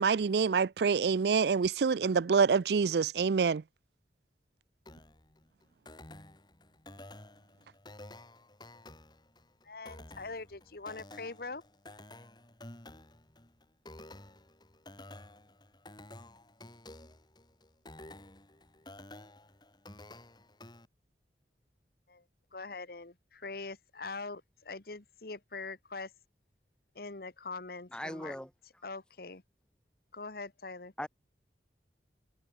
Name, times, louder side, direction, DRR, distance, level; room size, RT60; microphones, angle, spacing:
voice 1, 0.0-3.6, right 5 dB, 65° right, 0.4 m, -26 dB
sound 1, 4.9-20.9, left 1 dB, 25° left, 3.2 m, -52 dB
voice 2, 9.6-11.6 22.1-22.2 22.5-26.1 26.9-28.3 28.8-29.4 30.1-30.9, left 3 dB, 55° left, 1.4 m, -43 dB
voice 3, 27.9-28.5 31.0-31.1, left 1 dB, 5° left, 1.6 m, -38 dB
head